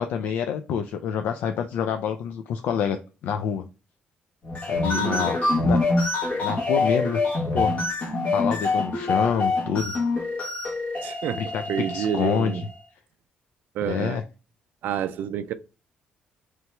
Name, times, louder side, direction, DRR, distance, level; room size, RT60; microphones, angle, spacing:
voice 1, 0.0-3.0 3.2-3.7 4.7-5.8 6.4-7.2 7.5-7.8 8.3-10.0 11.4-12.6 13.9-14.2, left 7 dB, 80° left, 0.3 m, -27 dB
sound 1, 4.4-12.7, left 3 dB, 50° left, 1.3 m, -25 dB
voice 2, 4.9-5.3 11.0-11.4 11.7-12.6 13.8-14.2 14.8-15.5, right 9 dB, 80° right, 0.3 m, -28 dB
3.3 x 2.9 x 4.3 m
cardioid pair, 120°, 3 cm